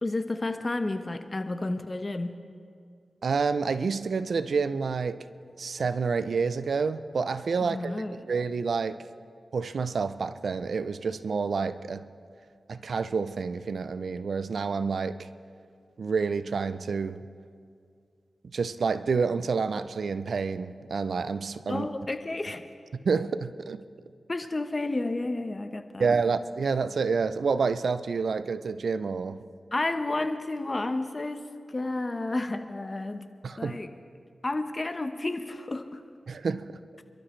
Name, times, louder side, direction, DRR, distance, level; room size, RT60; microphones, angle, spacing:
voice 1, 0.0-2.3 7.6-8.2 21.7-22.6 24.3-26.1 29.7-33.2 33.6-33.9 34.4-36.0, left 2 dB, 35° left, 1.1 m, -31 dB
voice 2, 3.2-5.2 5.6-9.0 9.5-12.1 12.7-15.3 16.0-17.2 18.5-21.9 23.0-23.8 26.0-29.4 33.4-33.8 36.3-36.7, right 5 dB, 75° right, 0.6 m, -28 dB
29.0 x 12.5 x 3.3 m
cardioid pair, 55°, 0 cm